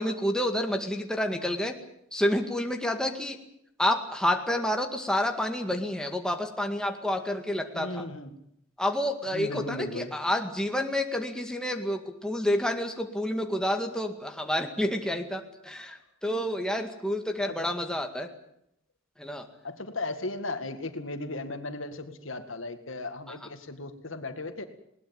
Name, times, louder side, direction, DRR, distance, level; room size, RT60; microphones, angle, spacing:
voice 1, 0.0-1.8 2.1-3.4 3.8-8.0 8.8-18.3 19.2-19.5, left 1 dB, 5° left, 4 dB, 2.0 m, -29 dB
voice 2, 7.7-8.4 9.3-10.1 17.4-17.6 19.6-24.6, left 2 dB, 70° left, 8 dB, 2.1 m, -36 dB
20.5 x 19.0 x 9.0 m, 0.74 s
head